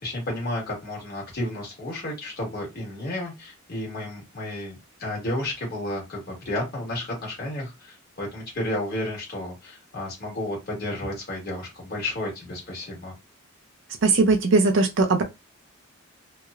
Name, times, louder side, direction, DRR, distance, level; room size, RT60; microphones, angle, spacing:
voice 1, 0.0-13.1, left 1 dB, 45° left, 1.3 m, -32 dB
voice 2, 14.0-15.2, right 3 dB, 55° right, 0.4 m, -19 dB
2.9 x 2.0 x 2.3 m
head